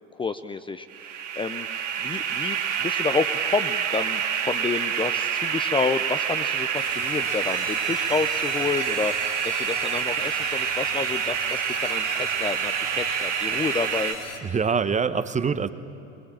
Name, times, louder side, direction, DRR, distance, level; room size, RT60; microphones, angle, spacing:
voice 1, 0.1-1.7 2.0-14.2, left 4 dB, 15° left, 10 dB, 0.6 m, -29 dB
sound 1, 0.9-14.1, right 8 dB, 70° right, 2.4 m, -27 dB
sound 2, 6.7-14.4, left 5 dB, 45° left, 3.4 m, -39 dB
voice 2, 14.4-15.7, right 6 dB, 20° right, 13 dB, 0.9 m, -24 dB
22.5 x 22.0 x 8.8 m, 2.9 s
figure-of-eight pair, 75°, 38 cm